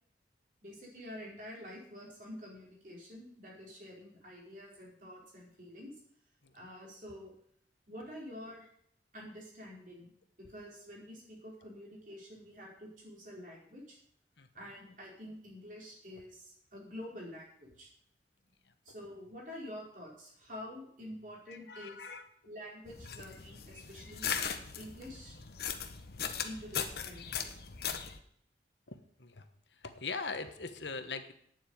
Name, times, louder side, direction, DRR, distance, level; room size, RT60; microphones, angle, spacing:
voice 1, 0.6-6.0 6.5-7.3 7.9-8.7 9.1-10.1 10.5-14.0 14.5-17.9 18.8-22.1 22.4-24.3 24.7-25.4 26.4-27.5, left 1 dB, 45° right, -3 dB, 4.8 m, -48 dB
voice 2, 21.5-22.2 28.9-29.4 29.8-31.3, left 4 dB, 80° left, 8 dB, 1.3 m, -41 dB
sound 1, 22.9-28.2, left 7 dB, 60° left, 1.1 m, -39 dB
9.3 x 7.6 x 9.2 m, 0.66 s
head